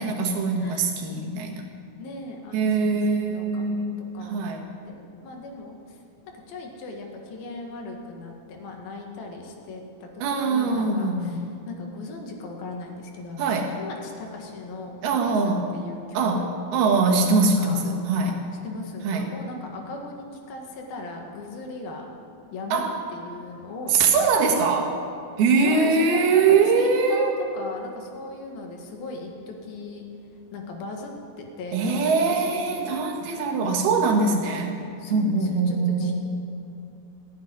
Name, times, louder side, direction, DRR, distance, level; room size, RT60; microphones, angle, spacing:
voice 1, 0.0-1.7 2.5-4.6 10.2-11.4 13.4-13.8 15.0-15.7 16.1-18.4 19.0-19.3 22.7-23.0 23.9-25.0 25.4-27.3 31.7-34.8 35.1-36.2, right 4 dB, 80° right, 2 dB, 3.5 m, -22 dB
voice 2, 0.6-1.0 2.0-3.9 4.1-4.6 4.9-6.0 6.5-16.5 17.1-17.8 18.6-22.1 22.5-22.8 23.1-24.5 25.6-30.1 30.5-31.1 31.4-33.0 33.6-33.9 35.0-36.2, left 3 dB, 75° left, 1 dB, 3.6 m, -38 dB
15.5 x 9.5 x 9.9 m, 2.5 s
omnidirectional pair, 4.4 m